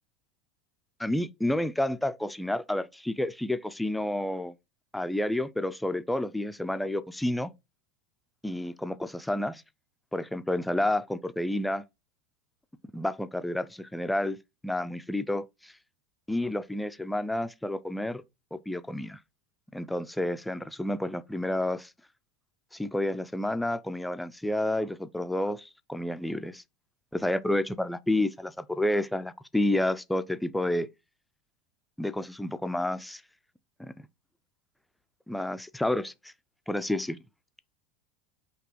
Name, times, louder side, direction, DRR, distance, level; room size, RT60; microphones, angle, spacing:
voice 1, 1.0-4.5 4.9-7.5 8.4-9.6 10.1-11.8 12.9-14.4 14.6-15.7 16.3-18.2 18.5-19.2 19.7-21.9 22.7-26.6 27.1-30.9 32.0-33.2 33.8-33.9 35.3-36.3 36.7-37.2, left 1 dB, 5° left, 0.4 m, -30 dB
5.8 x 2.9 x 3.0 m
figure-of-eight pair, 80°, 0 cm